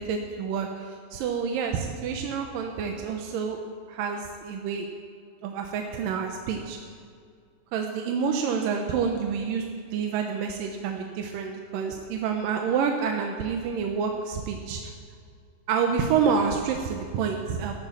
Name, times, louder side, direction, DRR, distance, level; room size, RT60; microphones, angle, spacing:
voice 1, 0.0-3.6 3.9-4.9 5.4-6.8 7.7-14.9 15.7-17.7, right 6 dB, 70° right, 3 dB, 2.2 m, -28 dB
14.0 x 12.5 x 7.3 m, 2.2 s
omnidirectional pair, 4.9 m